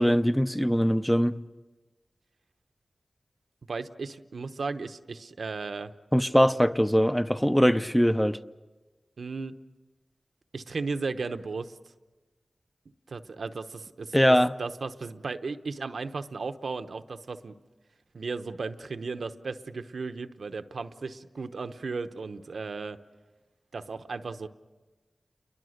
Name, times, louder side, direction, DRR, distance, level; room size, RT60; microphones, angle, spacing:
voice 1, 0.0-1.4 6.1-8.4 14.1-14.5, equal, 5° left, 0.8 m, -22 dB
voice 2, 3.7-5.9 9.2-9.6 10.5-11.8 13.1-17.6 18.1-23.0 23.7-24.5, right 4 dB, 85° right, 0.9 m, -35 dB
29.5 x 22.5 x 6.6 m
cardioid pair, 50°, 0 cm